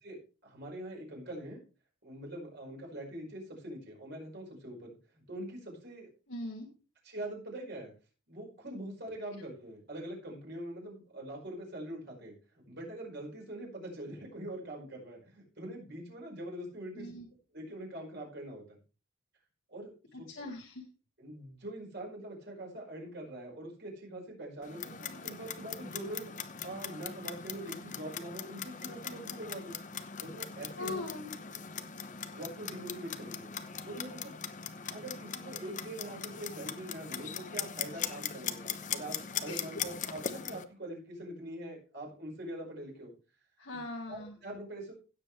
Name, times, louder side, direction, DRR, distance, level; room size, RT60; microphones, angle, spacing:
voice 1, 0.0-1.6 2.0-6.1 7.0-7.9 8.3-17.1 17.5-18.8 19.7-19.9 20.2-20.5 21.2-26.3 26.6-29.8 30.2-31.0 32.3-33.5 33.8-34.3 34.9-43.1 43.7-43.8 44.1-44.9, right 1 dB, 55° right, -1 dB, 5.2 m, -43 dB
voice 2, 6.3-6.7 17.0-17.3 20.1-20.8 30.8-31.3 39.5-39.7 43.6-44.4, left 2 dB, 75° left, 0 dB, 1.8 m, -41 dB
Clock, 24.6-40.6, left 7 dB, 40° left, 0.8 m, -40 dB
16.5 x 7.7 x 3.3 m, 0.34 s
head